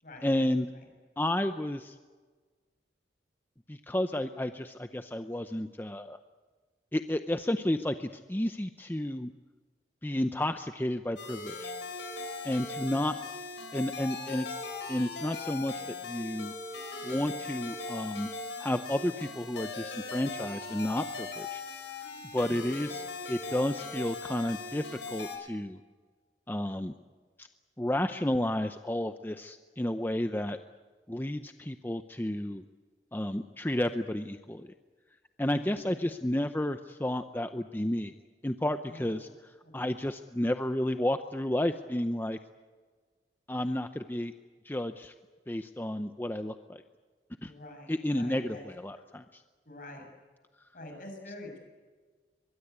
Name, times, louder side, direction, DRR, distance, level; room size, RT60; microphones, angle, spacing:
voice 1, 0.2-0.7 1.2-2.0 3.7-6.2 6.9-9.3 10.0-11.7 12.4-13.1 13.7-14.6 14.9-16.5 17.0-18.3 18.6-21.6 22.3-25.8 26.5-26.9 27.4-27.5 27.8-30.6 31.1-32.6 33.1-34.7 35.4-38.1 38.4-42.4 43.5-44.3 44.6-45.1 45.5-46.8 47.4-47.5 47.9-49.4, left 1 dB, 10° left, 8 dB, 0.6 m, -31 dB
sound 1, 11.2-25.4, left 3 dB, 75° left, 5.5 m, -39 dB
voice 2, 22.4-22.7 35.5-35.8 38.9-39.3 39.6-40.0 47.4-48.7 48.9-49.1 49.7-50.1 50.7-51.6, left 1 dB, 50° left, 3 dB, 7.0 m, -47 dB
23.5 x 22.0 x 8.3 m, 1.4 s
head